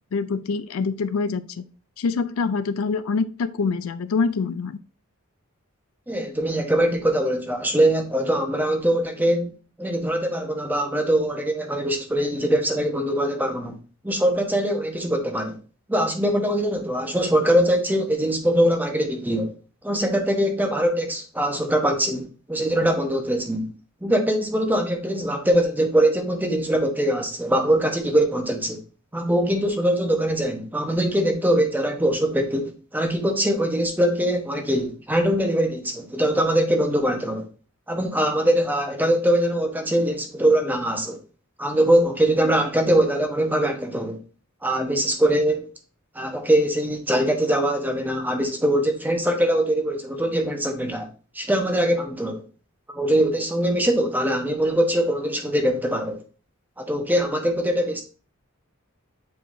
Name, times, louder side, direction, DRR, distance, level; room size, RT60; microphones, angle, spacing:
voice 1, 0.1-1.6 2.0-4.8, left 4 dB, 75° left, 0.4 m, -25 dB
voice 2, 6.1-9.5 9.8-13.8 14.0-15.6 15.9-19.5 19.8-23.7 24.0-28.8 29.1-37.5 37.9-41.2 41.6-44.2 44.6-45.7 46.1-51.1 51.3-52.4 52.9-56.2 56.8-58.0, right 1 dB, 10° right, 0.9 m, -22 dB
8.2 x 4.6 x 2.6 m
head